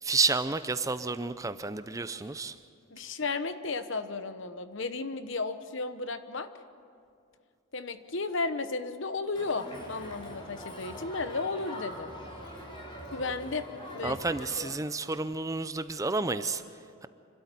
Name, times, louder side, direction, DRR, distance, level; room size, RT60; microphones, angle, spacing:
voice 1, 0.0-2.6 14.0-17.1, right 4 dB, 15° right, 12 dB, 0.5 m, -31 dB
voice 2, 2.9-6.5 7.7-12.1 13.1-13.7 13.9-14.2 14.6-14.7, left 3 dB, 60° left, 10 dB, 1.0 m, -34 dB
Crowd, 9.4-14.6, equal, 25° left, 4.6 m, -43 dB
26.0 x 12.5 x 10.0 m, 2.3 s
head